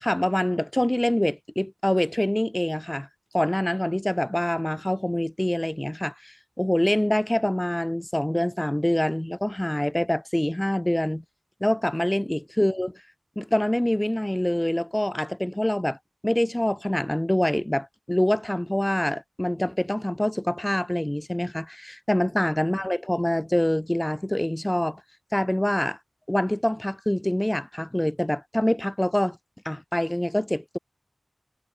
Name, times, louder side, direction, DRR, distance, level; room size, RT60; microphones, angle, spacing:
voice 1, 0.0-3.1 3.3-11.2 11.6-12.9 13.4-16.0 16.2-25.0 25.3-26.0 26.3-29.4 29.7-30.8, left 1 dB, 15° left, 0.7 m, -25 dB
wide cardioid pair, 70°, 0 cm